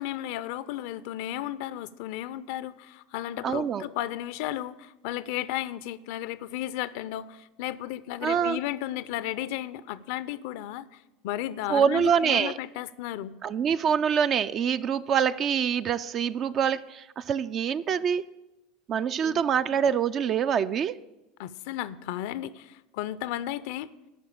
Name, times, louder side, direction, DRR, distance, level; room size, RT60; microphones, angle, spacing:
voice 1, 0.0-13.3 19.2-19.4 21.4-23.9, left 13 dB, 65° left, 0.4 m, -34 dB
voice 2, 3.4-3.8 8.2-8.6 11.7-12.6 13.4-18.3 18.9-21.0, right 7 dB, 40° right, 0.4 m, -25 dB
12.0 x 5.3 x 8.4 m
hypercardioid pair, 80°, 0 cm